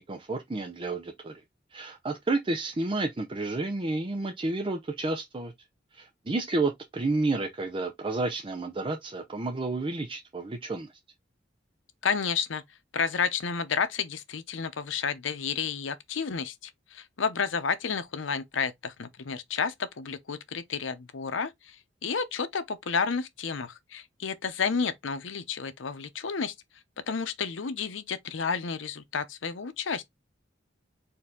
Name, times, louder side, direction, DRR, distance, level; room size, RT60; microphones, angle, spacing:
voice 1, 0.0-1.4 1.7-5.5 5.9-10.9, right 2 dB, 30° right, 0.5 m, -31 dB
voice 2, 12.0-12.6 12.9-21.8 22.0-26.5 27.1-30.0, left 6 dB, 85° left, 0.7 m, -31 dB
4.4 x 2.7 x 3.6 m
head